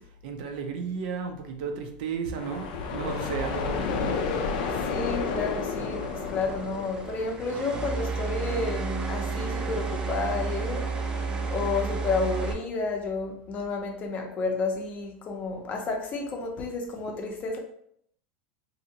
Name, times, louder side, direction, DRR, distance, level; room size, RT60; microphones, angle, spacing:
voice 1, 0.2-4.2, right 6 dB, 70° right, 5 dB, 0.5 m, -33 dB
Powerful Starship Rocket Flyby, 2.3-8.1, left 5 dB, 80° left, 0.4 m, -31 dB
sound 1, 3.1-12.5, right 4 dB, 20° right, 0.4 m, -33 dB
voice 2, 4.7-10.8 11.5-17.6, left 4 dB, 35° left, 2 dB, 0.6 m, -31 dB
2.7 x 2.5 x 2.8 m, 0.68 s
supercardioid pair, 140°, 5 cm